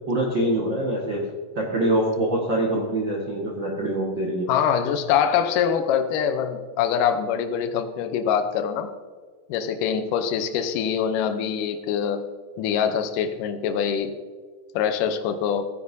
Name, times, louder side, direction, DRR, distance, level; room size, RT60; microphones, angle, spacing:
voice 1, 0.1-1.3 1.5-4.5, right 1 dB, 80° right, -2 dB, 1.0 m, -24 dB
voice 2, 4.5-8.9 9.5-12.2 12.6-14.2 14.7-15.7, left 8 dB, 80° left, 8 dB, 1.9 m, -24 dB
17.5 x 9.7 x 2.7 m, 1.5 s
omnidirectional pair, 4.7 m